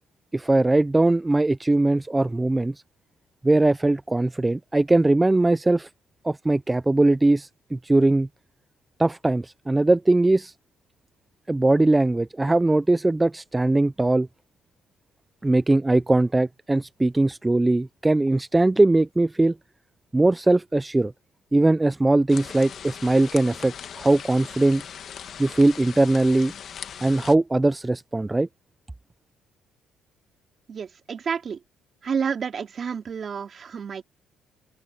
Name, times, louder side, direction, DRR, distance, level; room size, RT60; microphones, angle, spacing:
voice 1, 0.3-2.7 3.4-5.9 6.2-8.3 9.0-10.5 11.5-14.3 15.4-19.6 20.1-21.1 21.5-24.8 25.4-26.5 27.0-28.5, right 2 dB, 10° right, 0.4 m, -20 dB
sound 1, 22.3-27.4, left 8 dB, 50° left, 1.4 m, -39 dB
voice 2, 30.7-31.6 32.0-34.0, right 6 dB, 40° right, 3.3 m, -30 dB
open air
cardioid pair, 130°, 0 cm